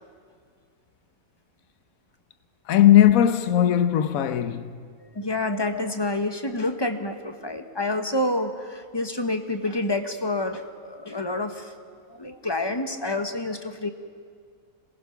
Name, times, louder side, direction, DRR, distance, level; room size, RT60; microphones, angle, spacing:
voice 1, 2.7-4.8, left 11 dB, 75° left, 1.3 m, -18 dB
voice 2, 5.0-11.7 12.1-13.9, left 2 dB, 20° left, 1.1 m, -28 dB
26.5 x 20.0 x 5.9 m
omnidirectional pair, 1.5 m